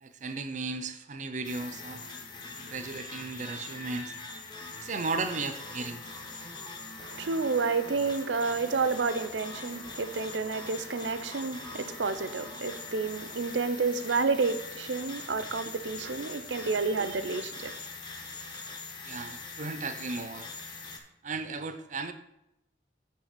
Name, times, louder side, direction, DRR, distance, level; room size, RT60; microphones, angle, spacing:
voice 1, 0.0-2.0 2.6-4.1 4.8-6.0 19.1-20.5 21.2-22.1, right 3 dB, 45° right, 0.5 m, -35 dB
sound 1, 1.4-21.0, left 3 dB, 25° left, 0.9 m, -43 dB
voice 2, 7.0-17.7, right 4 dB, 85° right, 0.6 m, -30 dB
8.5 x 3.3 x 6.6 m
head